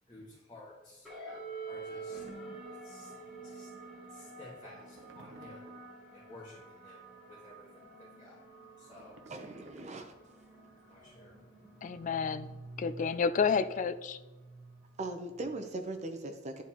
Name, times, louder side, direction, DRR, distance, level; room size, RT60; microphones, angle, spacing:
voice 1, 0.0-2.3 2.5-9.3 10.5-12.1, left 1 dB, 25° left, -8 dB, 1.7 m, -55 dB
sound 1, 1.0-15.8, right 3 dB, ahead, 2.2 m, -48 dB
sound 2, 2.3-2.5 4.1-4.2 4.6-5.9 8.5-10.3, right 2 dB, 80° right, 0.8 m, -58 dB
voice 2, 9.3-10.1 15.0-16.6, right 2 dB, 35° right, 6 dB, 0.7 m, -39 dB
voice 3, 11.8-12.5 12.8-14.2, left 6 dB, 40° left, 12 dB, 0.3 m, -30 dB
11.0 x 4.2 x 3.0 m, 1.1 s
head